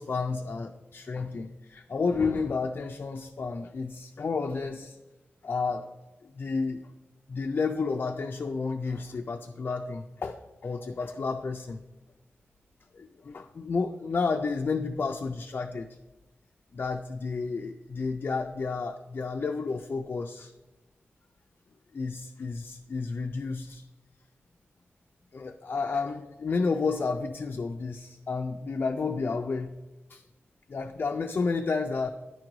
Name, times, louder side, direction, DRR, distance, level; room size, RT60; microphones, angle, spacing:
voice 1, 0.0-5.0 5.4-5.9 6.2-6.9 7.3-11.8 12.9-16.0 16.7-20.5 21.9-23.8 25.3-29.7 30.1-30.2 30.7-32.1, left 4 dB, 50° left, 4 dB, 0.3 m, -31 dB
10.0 x 4.6 x 3.8 m, 1.1 s
wide cardioid pair, 140°, 4 cm